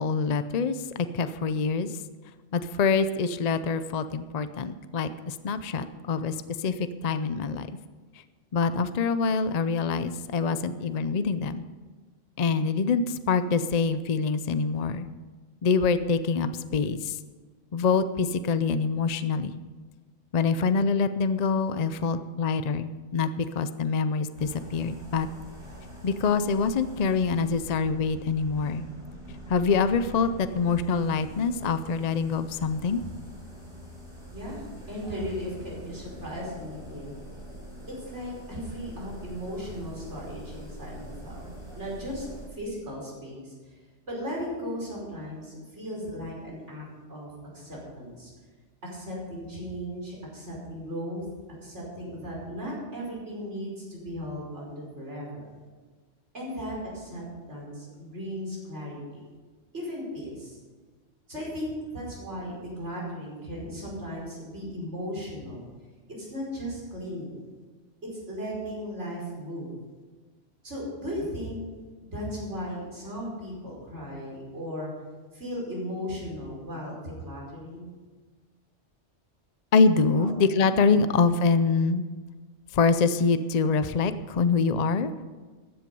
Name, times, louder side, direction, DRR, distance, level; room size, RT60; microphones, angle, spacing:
voice 1, 0.0-2.0 2.5-7.7 8.5-11.6 12.4-15.1 15.6-17.2 17.7-19.5 20.3-25.3 26.0-28.8 29.5-33.0 79.7-82.0 82.7-85.1, left 5 dB, 45° left, 11 dB, 0.5 m, -25 dB
sound 1, 24.3-42.5, equal, 25° right, 5.1 m, -44 dB
voice 2, 34.3-37.1 37.9-41.5 41.7-43.5 44.1-48.3 48.8-51.3 51.6-55.4 56.3-57.2 57.5-59.2 59.7-60.6 61.3-65.7 66.2-67.4 68.0-69.7 70.6-71.6 72.0-74.9 75.3-77.9 80.1-80.3 80.9-81.1, equal, 65° right, -4 dB, 5.4 m, -36 dB
15.0 x 10.5 x 5.4 m, 1.4 s
omnidirectional pair, 1.3 m